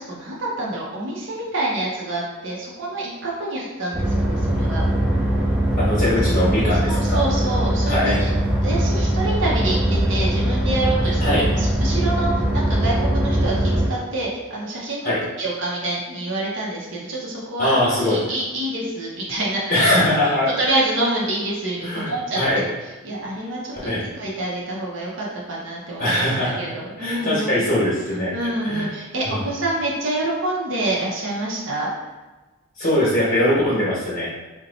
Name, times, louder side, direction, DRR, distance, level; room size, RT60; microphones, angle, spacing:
voice 1, 0.0-4.8 6.8-8.3 8.6-19.9 20.6-22.7 23.0-27.6 28.3-31.9, right 2 dB, 60° right, -5 dB, 0.7 m, -27 dB
sound 1, 3.9-13.9, right 1 dB, 5° right, 0.3 m, -21 dB
voice 2, 5.8-7.2 7.9-8.2 11.2-11.5 15.0-15.2 17.6-18.2 19.7-20.5 21.8-22.6 23.8-24.0 26.0-26.6 27.0-28.9 29.2-29.4 32.8-34.3, left 1 dB, 45° left, -9 dB, 1.0 m, -21 dB
2.8 x 2.1 x 3.9 m, 1.2 s
head